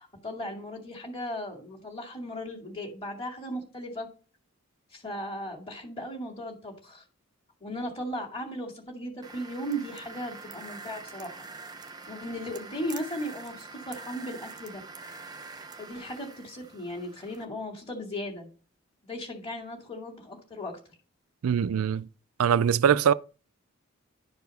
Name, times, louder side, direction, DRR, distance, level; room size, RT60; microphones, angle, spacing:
voice 1, 0.0-4.1 4.9-7.0 7.6-11.4 12.1-14.8 15.8-18.5 19.0-20.8, equal, 25° left, 2.2 m, -37 dB
sound 1, 9.2-17.4, right 4 dB, 20° right, 0.8 m, -45 dB
voice 2, 21.4-22.1 22.4-23.1, right 8 dB, 75° right, 0.4 m, -22 dB
11.5 x 4.8 x 5.3 m
head